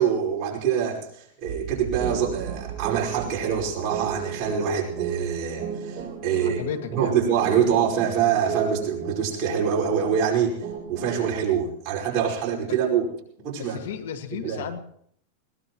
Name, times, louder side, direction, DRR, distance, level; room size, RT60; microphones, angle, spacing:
voice 1, 0.0-6.6 6.9-13.1 13.4-13.8 14.4-14.6, right 8 dB, 35° right, -3 dB, 5.1 m, -25 dB
Boom, 1.4-5.7, right 9 dB, 60° right, 5.6 m, -38 dB
sound 1, 2.0-11.3, right 7 dB, 15° right, 7.0 m, -35 dB
voice 2, 6.4-7.2 12.7-12.8 13.6-14.8, left 8 dB, 85° left, 7 dB, 1.9 m, -34 dB
21.5 x 19.0 x 3.1 m, 0.65 s
supercardioid pair, 155°, 0 cm